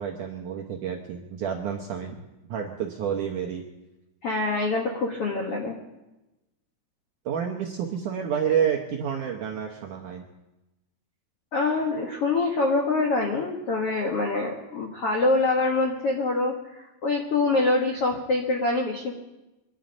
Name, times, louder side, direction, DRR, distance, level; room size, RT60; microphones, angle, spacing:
voice 1, 0.0-2.2 2.5-3.6 7.3-10.3, right 8 dB, 70° right, 1 dB, 1.9 m, -29 dB
voice 2, 4.2-5.7 11.5-19.1, left 3 dB, 70° left, 1 dB, 1.4 m, -25 dB
25.0 x 11.0 x 5.2 m, 1.0 s
omnidirectional pair, 5.0 m